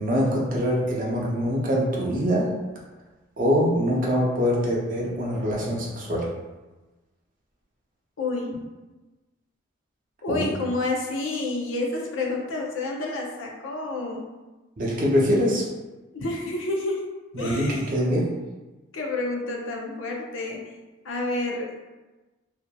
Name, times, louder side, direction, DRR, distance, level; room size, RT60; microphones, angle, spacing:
voice 1, 0.0-2.5 3.4-6.3 10.3-10.5 14.8-15.6 17.3-18.4, equal, 40° right, -4 dB, 0.5 m, -24 dB
voice 2, 8.2-8.6 10.2-14.2 16.1-17.0 17.4-17.9 18.9-20.6 21.0-21.8, left 2 dB, 70° left, -1 dB, 0.5 m, -29 dB
2.8 x 2.4 x 2.2 m, 1.2 s
head